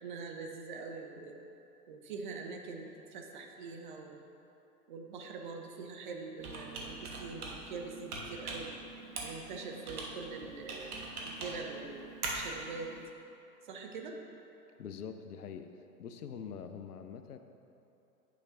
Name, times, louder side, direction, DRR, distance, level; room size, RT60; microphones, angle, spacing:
voice 1, 0.0-1.3 1.9-4.2 4.9-8.7 9.2-12.0 12.3-12.9 13.6-14.2, right 4 dB, 30° right, 2 dB, 0.5 m, -44 dB
Computer keyboard, 6.4-13.1, right 3 dB, 65° right, 1.3 m, -42 dB
voice 2, 14.8-15.7 16.0-17.4, left 7 dB, 70° left, 8 dB, 0.6 m, -44 dB
9.8 x 5.9 x 2.5 m, 2.9 s
figure-of-eight pair, 105°, 49 cm